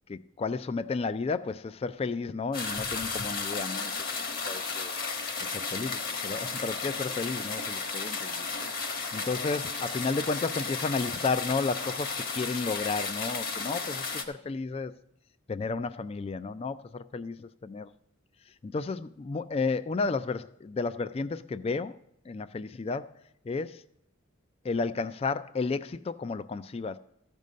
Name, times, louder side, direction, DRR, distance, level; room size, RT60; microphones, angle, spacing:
voice 1, 0.1-3.9 4.5-4.9 5.7-5.9 6.2-8.5 9.1-14.9 15.5-17.9 18.6-22.0 22.3-23.1 23.5-23.8 24.6-27.0, left 4 dB, 30° left, 0.3 m, -32 dB
sound 1, 2.5-14.2, left 4 dB, 45° left, 1.2 m, -34 dB
13.5 x 5.3 x 6.3 m
head